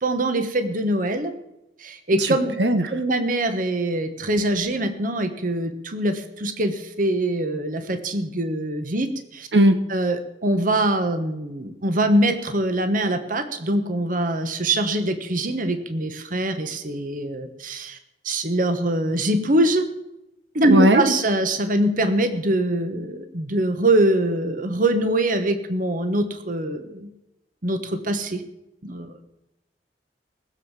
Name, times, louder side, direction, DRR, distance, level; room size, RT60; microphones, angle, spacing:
voice 1, 0.0-1.3 1.8-2.6 2.9-9.5 9.9-18.0 18.2-19.8 20.5-27.1 27.6-28.4 28.8-29.2, right 1 dB, 50° right, 8 dB, 1.3 m, -23 dB
voice 2, 20.7-21.0, right 1 dB, 80° right, 9 dB, 1.3 m, -16 dB
19.5 x 7.3 x 7.4 m, 0.91 s
head